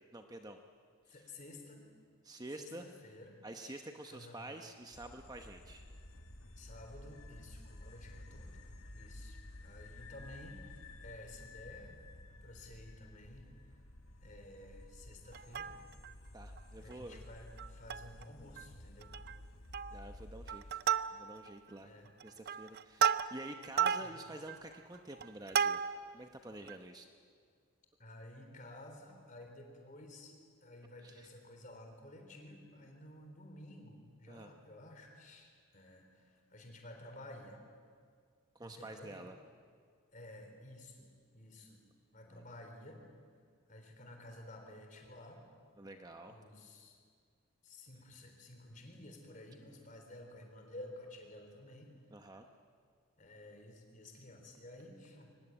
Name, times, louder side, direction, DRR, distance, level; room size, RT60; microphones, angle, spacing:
voice 1, 0.1-0.6 1.1-1.2 2.2-2.9 3.4-5.9 16.3-17.2 19.9-20.8 21.1-21.9 22.2-25.8 26.1-27.1 31.0-31.3 34.3-34.5 38.5-39.4 42.3-42.5 45.8-46.3 52.1-52.5, right 1 dB, 15° right, 5 dB, 0.9 m, -49 dB
voice 2, 1.1-1.8 2.5-4.5 6.6-8.6 8.9-12.0 12.4-13.5 14.2-15.8 16.8-19.1 21.8-22.1 24.0-24.2 28.0-30.3 30.6-37.6 38.6-39.1 40.1-41.8 42.1-43.0 43.7-45.4 46.3-47.0 47.6-51.9 53.2-55.3, left 1 dB, 35° left, 3 dB, 3.8 m, -53 dB
sound 1, 4.9-20.7, left 1 dB, 75° left, 1.9 m, -53 dB
Plucked string instrument, 15.3-16.1 16.6-16.7 16.9-17.1 17.6-18.2 18.6-18.7 19.0-19.4 19.7-20.1 20.5-21.5 22.1-26.2 26.7-26.8, right 8 dB, 45° right, 0.5 m, -34 dB
23.5 x 19.5 x 9.1 m, 2.1 s
head